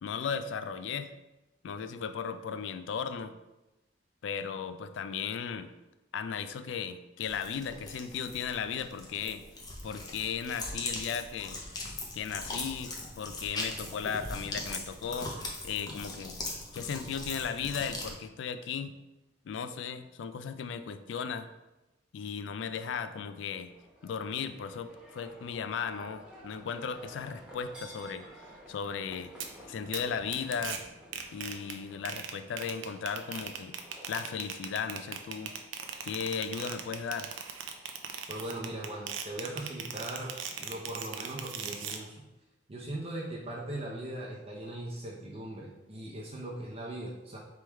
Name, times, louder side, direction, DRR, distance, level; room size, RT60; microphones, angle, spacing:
voice 1, 0.0-1.1 1.6-3.3 4.2-5.7 6.1-9.4 9.8-11.6 12.1-16.4 16.7-18.9 19.5-21.5 22.1-23.7 24.0-28.3 28.7-29.3 29.6-30.8 31.3-33.8 34.1-35.5 36.0-37.3, left 6 dB, 70° left, 10 dB, 0.3 m, -36 dB
sound 1, 7.2-18.1, left 2 dB, 20° left, 0.7 m, -40 dB
Livestock farm animals working animals, 23.7-40.1, equal, 5° right, 1.1 m, -54 dB
sound 2, 29.4-29.5 29.9-30.0 30.3-30.8 31.1-31.7 32.0-42.0, right 8 dB, 90° right, 0.5 m, -38 dB
voice 2, 38.3-42.3 42.7-47.4, right 1 dB, 30° right, -3 dB, 0.6 m, -39 dB
3.5 x 3.1 x 4.4 m, 0.99 s
head